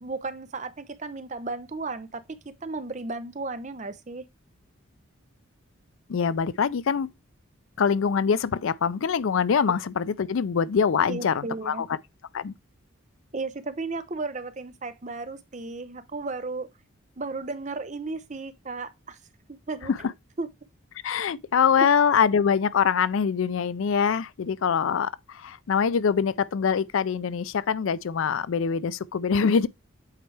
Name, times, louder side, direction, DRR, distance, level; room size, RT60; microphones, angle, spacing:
voice 1, 0.0-2.2 2.6-4.3 11.1-11.8 13.3-16.7 17.2-19.2 19.5-19.9 20.4-20.5, right 3 dB, 35° right, 0.6 m, -34 dB
voice 2, 6.1-7.1 7.8-11.9 12.3-12.5 19.9-20.0 21.0-29.7, left 6 dB, 70° left, 0.4 m, -24 dB
8.1 x 4.5 x 3.3 m
head